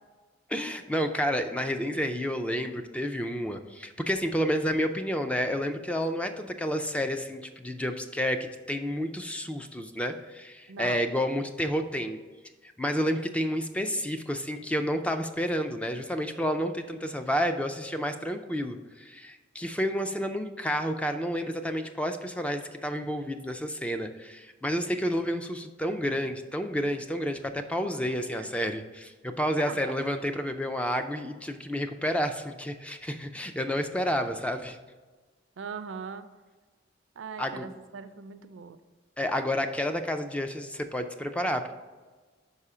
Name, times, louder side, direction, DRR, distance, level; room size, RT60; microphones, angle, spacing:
voice 1, 0.5-12.2 12.6-34.8 37.4-37.7 39.2-41.7, equal, 5° left, 7 dB, 0.3 m, -30 dB
voice 2, 10.7-11.0 28.4-28.5 29.7-29.9 35.6-36.3 37.2-38.8, right 6 dB, 75° right, 11 dB, 0.4 m, -40 dB
5.5 x 4.8 x 4.8 m, 1.3 s
head